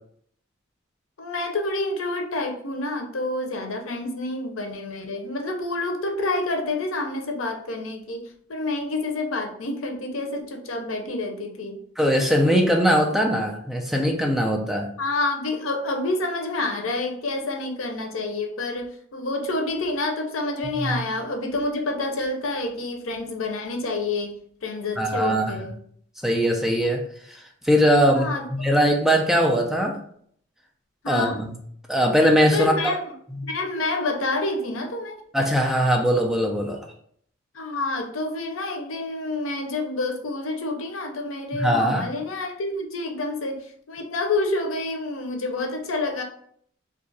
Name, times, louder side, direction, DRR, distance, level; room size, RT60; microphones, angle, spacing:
voice 1, 1.2-8.2 8.5-11.8 15.0-25.8 28.1-28.5 31.0-31.4 32.5-33.0 33.5-35.2 37.5-46.2, left 2 dB, 80° left, 3 dB, 0.6 m, -28 dB
voice 2, 12.0-14.9 20.6-21.0 25.0-25.6 26.2-27.0 27.3-27.4 27.6-30.0 31.1-31.5 31.9-33.0 33.3-33.5 35.3-36.8 41.5-42.1, equal, ahead, 1 dB, 0.4 m, -21 dB
2.7 x 2.4 x 3.8 m, 0.63 s
head